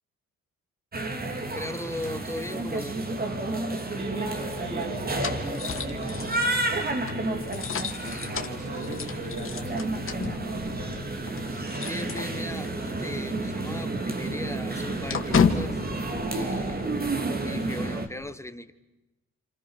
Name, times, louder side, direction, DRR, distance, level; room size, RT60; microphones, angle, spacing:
sound 1, 0.9-18.1, right 2 dB, 30° right, 2.8 m, -31 dB
voice 1, 1.6-3.0 11.5-15.8 16.3-16.9 17.4-18.7, left 1 dB, 10° left, 11 dB, 1.3 m, -38 dB
sound 2, 4.0-12.9 13.2-13.3 13.6-17.1, left 6 dB, 45° left, 2.4 m, -33 dB
voice 2, 4.0-6.6 7.0-7.7 7.9-10.9, right 1 dB, 75° right, -1 dB, 7.7 m, -39 dB
29.0 x 28.0 x 6.5 m, 1.0 s
cardioid pair, 90°, 30 cm